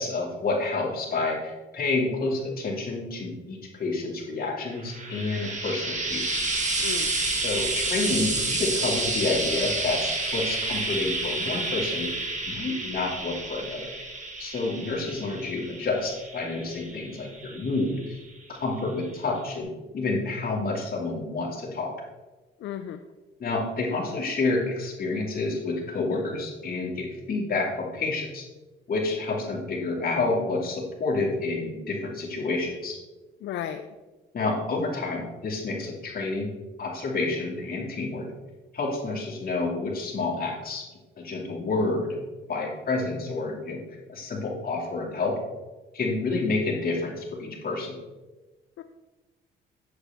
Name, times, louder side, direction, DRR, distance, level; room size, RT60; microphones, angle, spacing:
voice 1, 0.0-6.4 7.3-12.1 12.4-13.9 14.4-18.2 18.5-21.9 23.4-28.5 28.9-33.0 34.3-36.5 36.8-38.3 38.7-40.8 41.2-42.2 42.5-43.8 44.1-45.3 45.9-48.0, left 3 dB, 50° left, -2 dB, 2.4 m, -29 dB
Frying (food), 4.7-18.2 19.1-19.2, right 2 dB, 35° right, 1.9 m, -30 dB
voice 2, 6.8-7.1 22.6-23.0 33.4-33.9 48.8-48.9, left 9 dB, 70° left, 8 dB, 0.5 m, -34 dB
8.0 x 7.4 x 3.5 m, 1.2 s
cardioid pair, 90°, 20 cm